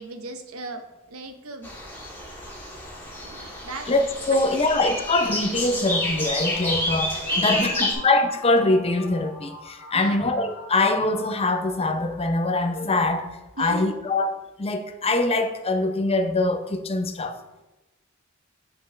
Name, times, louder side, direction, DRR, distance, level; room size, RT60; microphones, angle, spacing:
voice 1, 0.0-1.7 3.1-3.9 4.3-4.7 7.3-8.0 9.9-10.3 13.5-14.0 17.3-17.6, right 3 dB, 80° right, 7 dB, 0.8 m, -38 dB
sound 1, 1.6-7.9, left 1 dB, 10° left, 1.7 m, -29 dB
voice 2, 3.9-13.3 13.6-14.3 14.6-17.4, left 2 dB, 30° left, 7 dB, 0.6 m, -23 dB
sound 2, 5.7-12.5, equal, 15° right, 2.2 m, -42 dB
7.9 x 5.4 x 3.3 m, 1.0 s
head